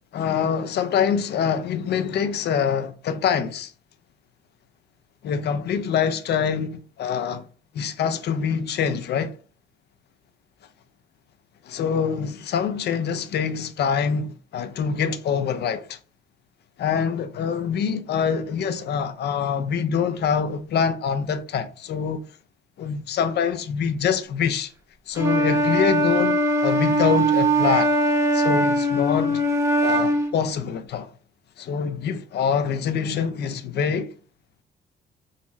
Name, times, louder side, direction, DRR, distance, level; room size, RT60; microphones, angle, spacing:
voice 1, 0.1-3.7 5.2-7.5 7.7-9.4 11.6-16.0 16.8-22.3 22.8-24.7 25.1-27.9 28.3-29.4 29.8-31.1 31.6-34.1, left 7 dB, 60° left, 0.5 m, -25 dB
Wind instrument woodwind instrument, 25.2-30.3, right 1 dB, 15° right, 0.7 m, -21 dB
3.9 x 2.0 x 2.6 m
cardioid pair, 90°, 20 cm